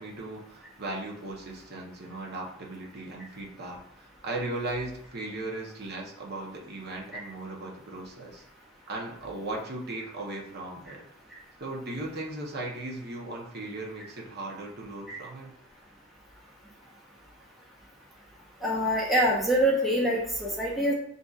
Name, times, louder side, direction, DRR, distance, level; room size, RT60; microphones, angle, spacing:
voice 1, 0.0-8.4 8.9-11.0 11.6-15.5, right 2 dB, 50° right, -1 dB, 0.9 m, -37 dB
voice 2, 18.6-20.9, equal, ahead, -4 dB, 0.7 m, -25 dB
6.6 x 2.6 x 2.4 m, 0.68 s
head